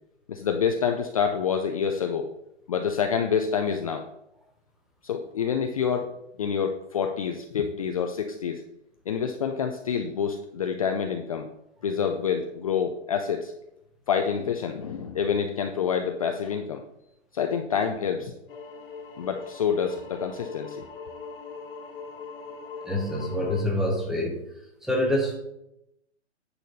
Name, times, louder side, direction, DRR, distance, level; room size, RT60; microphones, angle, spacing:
voice 1, 0.3-2.4 2.7-4.1 5.0-6.1 6.4-8.6 9.1-11.5 11.8-13.5 14.1-16.8 17.3-18.3 19.2-20.8, left 7 dB, 30° left, 5 dB, 0.4 m, -27 dB
sound 1, 18.5-23.6, left 4 dB, 50° left, 1.5 m, -41 dB
voice 2, 22.8-24.4 24.8-25.4, left 1 dB, ahead, 0 dB, 0.8 m, -26 dB
9.3 x 4.3 x 5.3 m, 0.84 s
hypercardioid pair, 155°, 35 cm